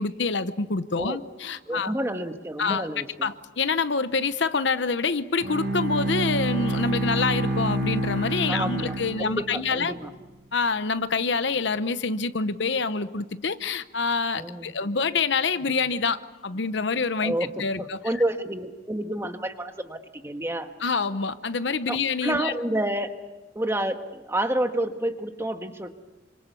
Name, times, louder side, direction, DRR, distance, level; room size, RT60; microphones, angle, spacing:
voice 1, 0.0-1.9 2.6-2.9 3.2-9.9 10.5-17.3 17.6-18.0 20.8-22.5, left 4 dB, 65° left, 12 dB, 0.9 m, -26 dB
voice 2, 1.7-3.3 8.5-10.1 14.4-14.7 17.2-20.7 21.9-23.1 23.5-25.9, right 1 dB, 15° right, 6 dB, 1.5 m, -29 dB
Bowed string instrument, 5.4-9.8, right 2 dB, 65° right, 5.4 m, -28 dB
28.0 x 26.0 x 7.0 m, 1.1 s
head